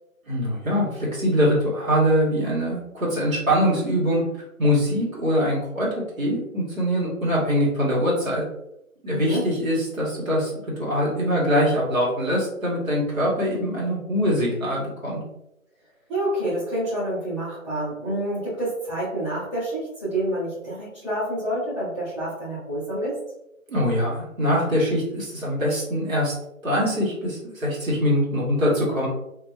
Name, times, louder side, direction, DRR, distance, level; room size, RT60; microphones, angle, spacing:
voice 1, 0.3-4.2 4.6-5.9 6.2-8.4 9.0-10.5 10.8-15.2 23.7-26.3 26.6-29.1, equal, 70° right, -6 dB, 1.4 m, -23 dB
voice 2, 9.1-9.4 16.1-23.2, right 1 dB, 20° right, -13 dB, 1.2 m, -28 dB
2.7 x 2.6 x 2.3 m, 0.84 s
figure-of-eight pair, 165°, 42 cm